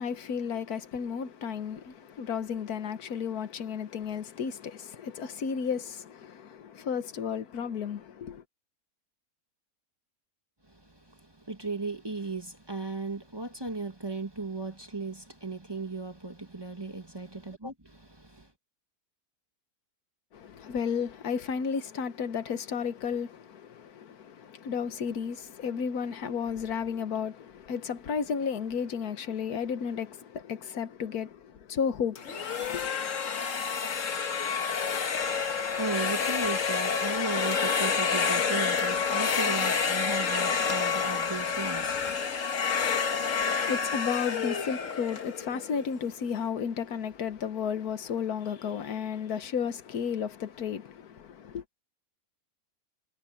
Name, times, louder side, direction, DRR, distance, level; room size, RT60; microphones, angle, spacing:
voice 1, 0.0-8.4 20.3-32.9 43.1-51.6, left 7 dB, 85° left, 1.6 m, -33 dB
voice 2, 11.5-18.5 35.2-42.2, right 3 dB, 15° right, 1.4 m, -36 dB
sound 1, 32.2-46.0, left 6 dB, 60° left, 1.7 m, -29 dB
omnidirectional pair, 1.6 m